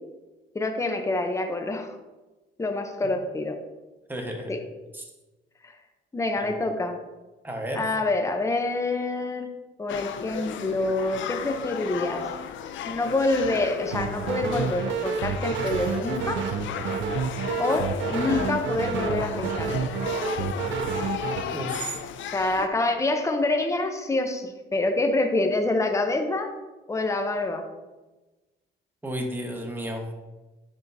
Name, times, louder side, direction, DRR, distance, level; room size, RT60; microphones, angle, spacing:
voice 1, 0.5-1.9 2.6-3.6 4.5-4.6 5.6-5.7 6.1-7.0 7.8-9.5 9.8-12.3 12.9-16.4 17.6-19.9 22.2-26.5 26.9-27.6, left 2 dB, 15° left, 5 dB, 0.7 m, -26 dB
voice 2, 4.1-4.5 4.9-5.0 7.4-7.8 21.5-21.9 29.0-30.1, right 1 dB, 10° right, 2 dB, 1.2 m, -32 dB
sound 1, 9.9-22.7, left 8 dB, 75° left, 0.5 m, -34 dB
sound 2, 13.9-21.4, right 6 dB, 75° right, 0.5 m, -29 dB
10.0 x 3.6 x 2.7 m, 1.1 s
cardioid pair, 90°, 20 cm